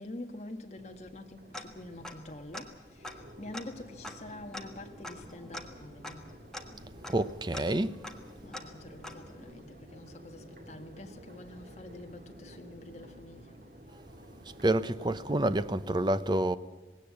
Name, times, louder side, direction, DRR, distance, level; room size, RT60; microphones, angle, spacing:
voice 1, 0.0-6.3 8.4-13.5, left 1 dB, 40° left, 1.6 m, -46 dB
Crowd, 0.8-15.9, equal, 50° right, 2.2 m, -52 dB
Tick-tock, 1.5-2.3 2.5-2.6 3.0-9.5, left 1 dB, 5° left, 1.6 m, -45 dB
voice 2, 7.1-8.0 14.6-16.6, right 1 dB, 25° right, 0.7 m, -28 dB
19.5 x 17.5 x 8.5 m
head